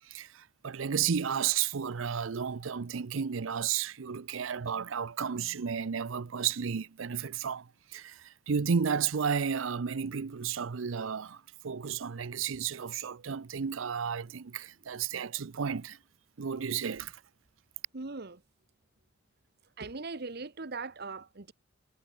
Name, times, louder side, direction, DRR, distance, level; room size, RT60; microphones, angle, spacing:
voice 1, 0.0-16.0 16.4-17.2, right 7 dB, 85° right, 0.6 m, -33 dB
voice 2, 17.9-18.4 19.8-21.5, right 3 dB, 55° right, 1.2 m, -40 dB
head